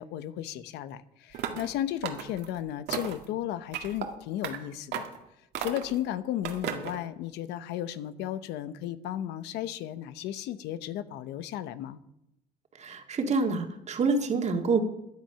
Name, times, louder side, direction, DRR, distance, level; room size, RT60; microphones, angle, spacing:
voice 1, 0.0-5.0 5.6-12.0, left 12 dB, 90° left, 13 dB, 0.9 m, -34 dB
sound 1, 1.3-1.7 2.0-2.5 2.9-3.3 3.7-4.1 4.4-4.6 4.9-5.2 5.5-6.0 6.4-7.0, right 9 dB, 80° right, 2.0 m, -34 dB
voice 2, 12.8-14.8, right 4 dB, 40° right, 5 dB, 2.0 m, -27 dB
15.5 x 10.5 x 5.8 m, 0.83 s
cardioid pair, 110°, 17 cm